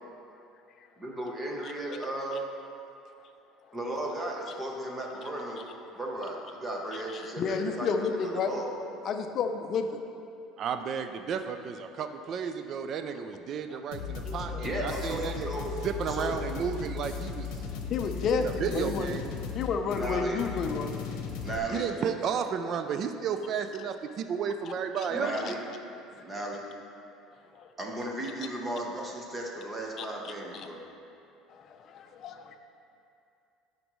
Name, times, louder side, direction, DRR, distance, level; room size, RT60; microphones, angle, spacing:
voice 1, 1.0-2.5 3.7-5.6 5.9-8.2 8.5-8.7 14.2-15.8 16.1-16.4 20.0-20.4 21.4-21.9 25.1-25.6 26.2-26.6 27.8-30.8, right 1 dB, 15° right, -1 dB, 0.9 m, -35 dB
voice 2, 6.9-8.5 9.0-9.8 17.9-19.2 19.5-21.0 21.7-21.8 25.4-25.5 27.5-27.7 30.0-30.7 31.5-32.6, left 5 dB, 40° left, 6 dB, 0.5 m, -31 dB
voice 3, 10.6-15.5 15.8-17.6 18.4-19.3 21.7-25.3, right 7 dB, 40° right, 7 dB, 0.3 m, -33 dB
sound 1, 13.9-21.6, left 6 dB, 70° left, 0.8 m, -37 dB
11.0 x 5.2 x 3.1 m, 2.6 s
cardioid pair, 155°, 0 cm